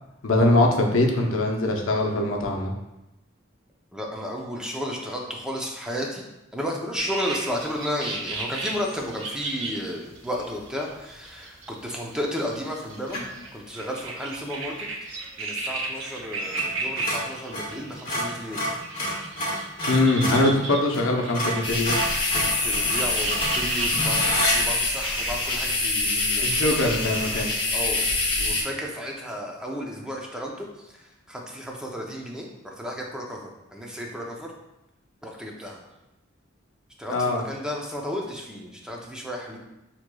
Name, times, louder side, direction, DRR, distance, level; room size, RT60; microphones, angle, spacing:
voice 1, 0.2-2.7 19.9-22.0 26.4-27.5 37.1-37.4, left 2 dB, 75° left, 1 dB, 0.7 m, -22 dB
voice 2, 3.9-6.2 6.5-13.2 13.5-14.9 15.4-18.6 20.5-20.6 22.3-26.9 27.7-28.1 28.4-34.5 35.2-35.8 37.0-39.6, equal, 5° right, -1 dB, 0.5 m, -33 dB
sound 1, 7.0-25.3, right 3 dB, 70° right, 0.7 m, -35 dB
sound 2, 13.1-13.4 16.5-16.7 17.0-20.5 20.9-21.1 21.3-24.6, equal, 45° left, 1.1 m, -28 dB
sound 3, 21.6-28.6, left 2 dB, 25° left, 0.7 m, -25 dB
6.1 x 2.9 x 2.2 m, 0.93 s
head